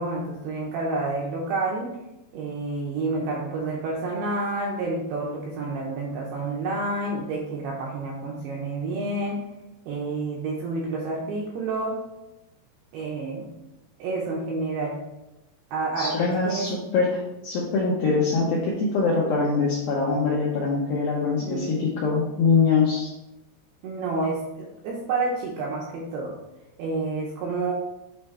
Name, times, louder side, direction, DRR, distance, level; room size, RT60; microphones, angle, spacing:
voice 1, 0.0-2.0 2.3-9.4 9.9-12.0 12.9-13.5 14.0-15.0 15.7-16.2 16.4-16.9 21.4-21.9 23.8-26.4 26.8-27.7, right 3 dB, 80° right, -3 dB, 2.4 m, -29 dB
voice 2, 16.0-23.1, left 4 dB, 80° left, -4 dB, 2.1 m, -23 dB
8.5 x 3.3 x 4.4 m, 0.95 s
omnidirectional pair, 5.5 m